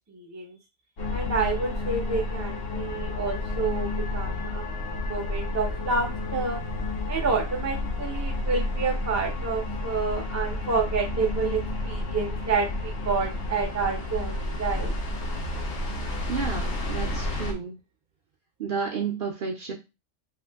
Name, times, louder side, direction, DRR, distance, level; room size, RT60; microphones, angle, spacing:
voice 1, 0.1-0.6 1.1-4.6 5.0-6.6 7.1-14.9, right 4 dB, 20° right, 3 dB, 0.5 m, -29 dB
sound 1, 1.0-17.5, left 2 dB, 75° left, 1.1 m, -31 dB
voice 2, 16.3-17.8 18.6-19.7, right 6 dB, 55° right, 1 dB, 0.7 m, -31 dB
2.9 x 2.6 x 3.4 m, 0.26 s
omnidirectional pair, 1.2 m